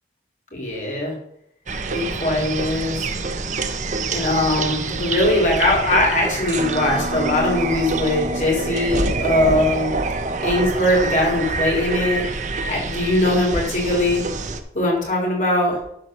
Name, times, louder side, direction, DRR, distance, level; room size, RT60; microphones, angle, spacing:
voice 1, 0.5-1.1 1.9-3.0 4.1-9.9 10.4-12.3 12.6-14.3 14.7-15.8, left 1 dB, 45° left, -2 dB, 3.6 m, -21 dB
sound 1, 1.7-14.6, right 3 dB, 45° right, 0.9 m, -26 dB
11.5 x 4.7 x 6.6 m, 0.74 s
head